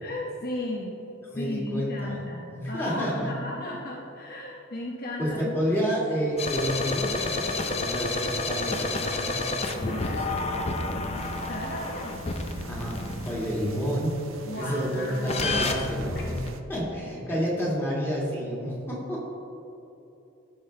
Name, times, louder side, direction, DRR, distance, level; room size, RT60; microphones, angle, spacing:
voice 1, 0.0-1.0 1.3-5.9 9.9-12.3 14.4-15.6 16.1-16.3, left 1 dB, 45° left, -3 dB, 1.0 m, -36 dB
voice 2, 1.3-2.2 2.5-3.4 5.2-9.4 10.0-10.3 10.6-11.0 12.7-13.0 13.2-14.2 14.6-16.4 16.7-19.3, equal, 10° left, -5 dB, 2.0 m, -29 dB
sound 1, 6.4-13.8 15.3-16.5, left 2 dB, 30° left, 0.6 m, -30 dB
sound 2, 11.1-16.6, right 3 dB, 70° right, 0.6 m, -44 dB
15.5 x 5.8 x 3.3 m, 2.9 s
head